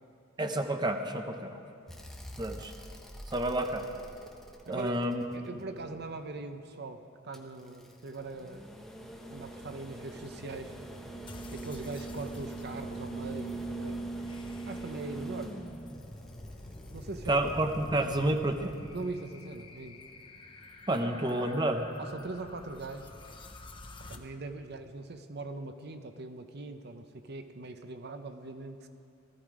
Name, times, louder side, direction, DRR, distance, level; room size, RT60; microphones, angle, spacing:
voice 1, 0.4-1.6 2.4-2.7 3.3-3.9 4.7-5.2 17.3-18.8 20.9-21.9, right 1 dB, 20° right, 5 dB, 0.8 m, -29 dB
sound 1, 1.9-6.1 7.3-18.5 20.1-20.2, right 2 dB, ahead, 1.3 m, -43 dB
voice 2, 4.7-5.1 5.3-8.7 9.3-10.8 11.5-14.0 14.7-15.5 16.9-17.4 18.9-20.0 22.0-23.1 24.1-28.9, right 3 dB, 55° right, 8 dB, 0.8 m, -41 dB
sound 2, 11.3-24.2, left 2 dB, 25° left, 0.9 m, -48 dB
18.5 x 14.0 x 5.0 m, 2.5 s
head